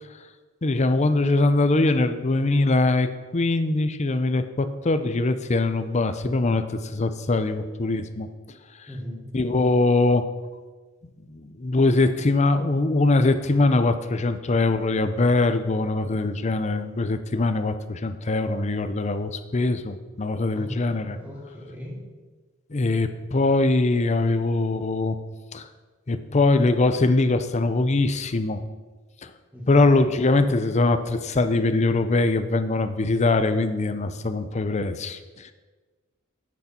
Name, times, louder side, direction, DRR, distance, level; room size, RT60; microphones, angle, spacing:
voice 1, 0.6-3.1 3.3-8.3 9.3-10.2 11.3-21.2 22.7-25.2 25.5-25.7 26.1-28.6 29.2-29.3 29.7-35.5, left 2 dB, 35° left, 10 dB, 0.6 m, -22 dB
voice 2, 8.9-9.3 20.5-20.7 21.1-22.0 29.5-29.8, equal, 5° right, -5 dB, 3.1 m, -37 dB
10.5 x 8.4 x 4.4 m, 1.3 s
head